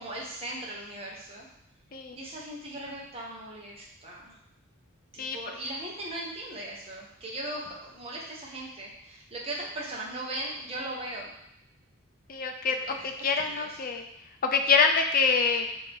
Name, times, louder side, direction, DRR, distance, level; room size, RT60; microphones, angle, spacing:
voice 1, 0.0-1.5 2.1-4.4 5.1-11.3 12.8-13.8, right 1 dB, 30° right, -4 dB, 0.9 m, -38 dB
voice 2, 12.3-12.8 13.2-14.0 14.4-15.7, left 5 dB, 40° left, 4 dB, 0.4 m, -25 dB
4.9 x 2.6 x 3.5 m, 0.81 s
head